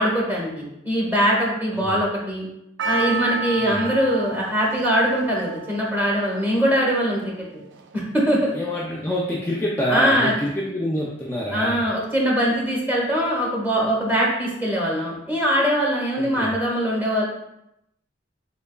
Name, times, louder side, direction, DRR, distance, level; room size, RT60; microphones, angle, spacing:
voice 1, 0.0-2.5 2.8-7.5 7.9-8.5 9.9-10.3 11.5-17.2, equal, 10° right, -3 dB, 0.9 m, -22 dB
Percussion, 2.8-7.1 7.8-7.9, right 4 dB, 75° right, 0.3 m, -31 dB
voice 2, 3.6-3.9 8.5-11.8 16.2-16.6, equal, 15° left, -5 dB, 0.3 m, -27 dB
3.6 x 3.4 x 2.2 m, 0.83 s
head